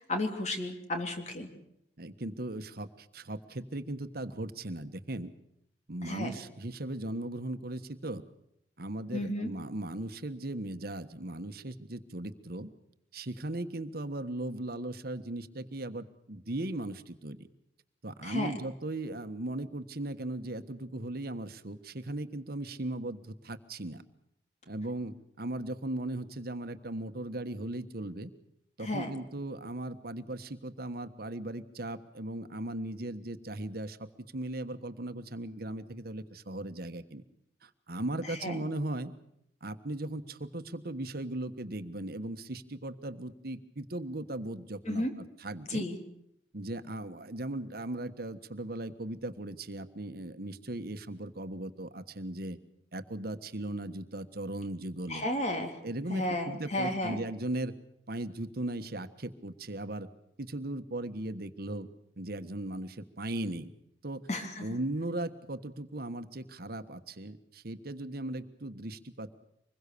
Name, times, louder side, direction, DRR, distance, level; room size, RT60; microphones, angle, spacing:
voice 1, 0.0-1.5 6.0-6.3 9.1-9.5 18.2-18.5 28.8-29.1 38.3-38.6 44.8-45.1 45.7-46.0 55.1-55.8 56.1-57.2 64.3-64.7, left 1 dB, 40° left, 5 dB, 3.3 m, -33 dB
voice 2, 2.0-5.3 5.9-8.2 8.8-12.7 13.1-17.4 18.0-24.0 24.7-28.3 28.8-37.2 37.6-39.1 39.6-45.8 46.5-52.6 52.9-55.2 55.8-57.7 58.1-60.1 60.4-61.9 62.2-63.7 64.0-64.2 64.6-69.4, right 1 dB, 60° right, 10 dB, 1.3 m, -38 dB
25.5 x 21.5 x 6.9 m, 0.75 s
head